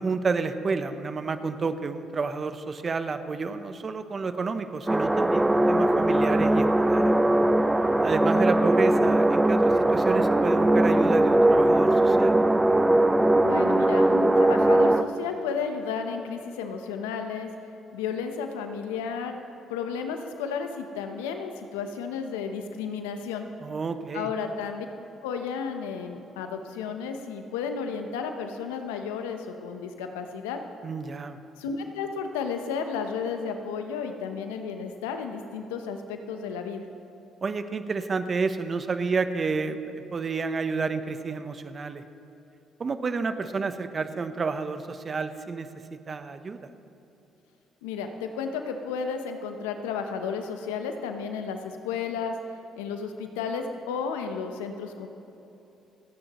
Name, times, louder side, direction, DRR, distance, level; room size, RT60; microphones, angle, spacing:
voice 1, 0.0-7.1 8.0-12.3 23.6-24.3 30.8-31.4 37.4-42.0 42.8-45.7 46.1-46.6, right 4 dB, 40° right, 10 dB, 0.9 m, -30 dB
sound 1, 4.9-15.0, right 1 dB, 15° right, 0.6 m, -20 dB
voice 2, 13.4-17.5 17.9-19.4 19.7-23.5 24.1-24.9 25.2-30.6 31.6-36.8 47.8-52.3 52.8-55.1, left 6 dB, 85° left, 6 dB, 0.9 m, -33 dB
29.0 x 10.0 x 3.1 m, 2.9 s
hypercardioid pair, 55°, 0 cm